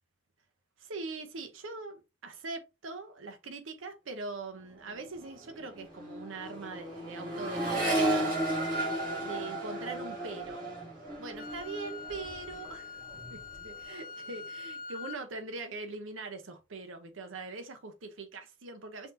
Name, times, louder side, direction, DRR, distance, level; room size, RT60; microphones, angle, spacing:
voice 1, 0.8-8.3 9.2-10.7 11.2-13.0 13.3-19.1, right 3 dB, 90° right, 0.7 m, -42 dB
Accelerating revving vroom, 4.7-5.0 5.2-12.7 13.1-13.7, right 1 dB, 45° right, 2.4 m, -34 dB
Wind instrument woodwind instrument, 11.4-15.2, left 5 dB, 45° left, 0.5 m, -44 dB
5.7 x 2.7 x 2.6 m
head